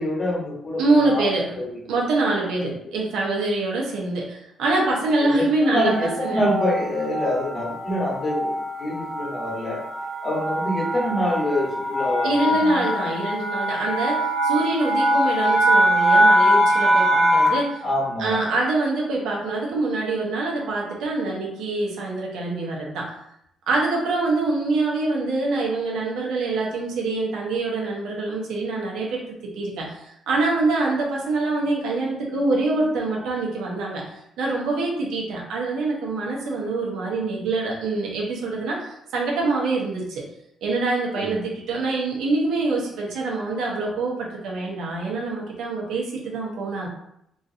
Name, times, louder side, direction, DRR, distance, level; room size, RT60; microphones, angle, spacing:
voice 1, 0.0-1.3 1.6-1.8 2.6-2.7 5.2-9.8 10.2-12.8 17.8-18.4 41.2-41.4, left 1 dB, 35° left, -4 dB, 1.3 m, -26 dB
voice 2, 0.8-1.6 1.9-6.4 12.2-17.8 18.2-23.1 23.7-34.1 34.4-40.2 40.6-46.9, right 3 dB, 85° right, -2 dB, 0.9 m, -25 dB
sound 1, 5.6-17.7, equal, 40° right, 1.0 m, -22 dB
2.9 x 2.5 x 2.7 m, 0.75 s
cardioid pair, 90°, 0 cm